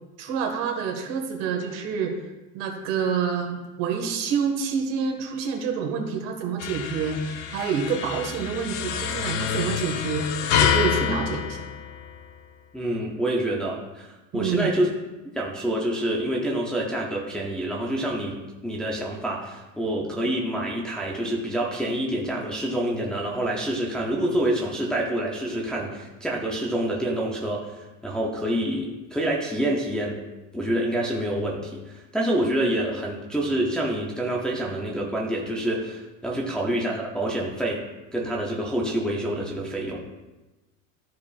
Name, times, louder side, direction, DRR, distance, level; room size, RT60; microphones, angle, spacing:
voice 1, 0.2-2.1 2.5-11.7 14.3-14.7, right 6 dB, 70° right, 3 dB, 1.6 m, -28 dB
sound 1, 6.6-12.4, left 8 dB, 90° left, 0.8 m, -27 dB
voice 2, 12.7-14.1 14.3-14.9 15.3-18.4 18.6-30.2 30.5-37.9 38.1-40.0, right 1 dB, ahead, -4 dB, 0.5 m, -27 dB
13.5 x 4.8 x 2.4 m, 1.1 s
cardioid pair, 175°, 37 cm